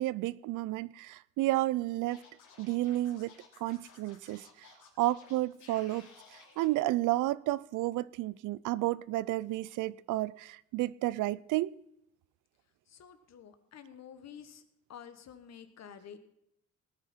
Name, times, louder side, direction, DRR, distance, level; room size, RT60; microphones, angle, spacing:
voice 1, 0.0-2.2 2.6-3.3 3.6-4.7 5.0-11.7, right 17 dB, 90° right, 0.5 m, -31 dB
Scratching (performance technique), 2.1-6.6, left 5 dB, 85° left, 3.3 m, -57 dB
voice 2, 12.9-14.6 14.9-16.2, left 8 dB, 60° left, 1.5 m, -50 dB
19.0 x 9.3 x 4.4 m
cardioid pair, 90°, 30 cm